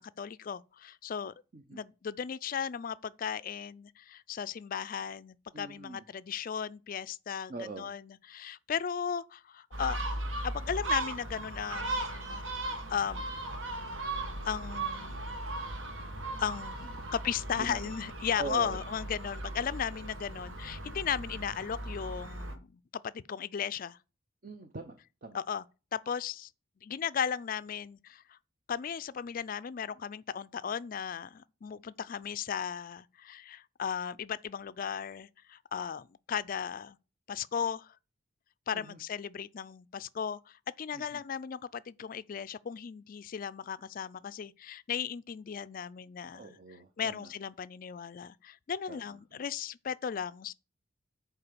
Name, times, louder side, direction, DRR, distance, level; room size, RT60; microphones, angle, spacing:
voice 1, 0.0-1.3 1.7-10.0 10.4-12.4 12.9-13.3 14.5-15.4 16.4-24.0 25.3-25.6 25.9-26.5 26.8-28.4 28.7-37.0 37.3-38.0 38.7-46.6 47.0-50.5, left 7 dB, 45° left, 0.3 m, -36 dB
voice 2, 5.5-6.0 7.5-7.9 17.6-17.8 18.4-18.8 24.4-25.4 38.7-39.0 40.9-41.2 46.3-47.3 48.9-49.2, right 3 dB, 45° right, 0.8 m, -42 dB
Gull seagull, 9.7-22.6, right 2 dB, 70° right, 1.3 m, -37 dB
6.9 x 4.7 x 6.8 m
head